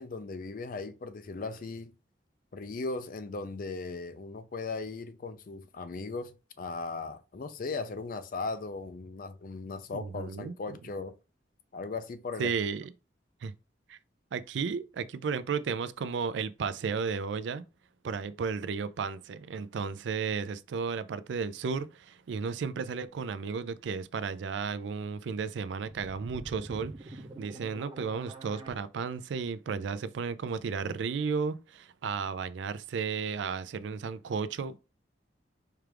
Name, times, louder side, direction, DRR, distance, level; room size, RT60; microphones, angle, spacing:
voice 1, 0.0-1.9 2.5-11.1 11.7-12.5, left 3 dB, 50° left, 0.4 m, -38 dB
voice 2, 9.9-10.8 12.4-12.9 13.4-13.5 13.9-14.0 14.3-17.6 18.0-34.8, right 5 dB, 75° right, 0.4 m, -34 dB
sound 1, 25.9-28.7, right 1 dB, 25° right, 0.5 m, -45 dB
4.5 x 2.4 x 3.3 m
head